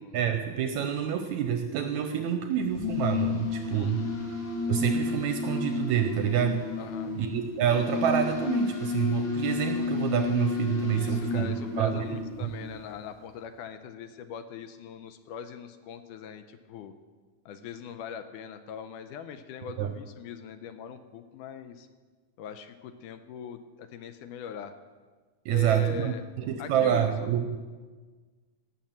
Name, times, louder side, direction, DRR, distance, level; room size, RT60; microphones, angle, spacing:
voice 1, 0.1-4.1 4.7-6.7 7.2-11.5 11.8-12.5 19.8-19.9 25.5-27.6, right 9 dB, 75° right, 7 dB, 1.7 m, -27 dB
sound 1, 2.6-13.0, left 4 dB, 35° left, 2.8 m, -32 dB
voice 2, 3.7-4.2 6.8-7.1 10.9-16.9 17.5-21.9 22.4-24.7 25.5-26.2 26.6-27.3, left 7 dB, 80° left, 10 dB, 2.0 m, -41 dB
17.5 x 7.3 x 7.3 m, 1.4 s
omnidirectional pair, 3.9 m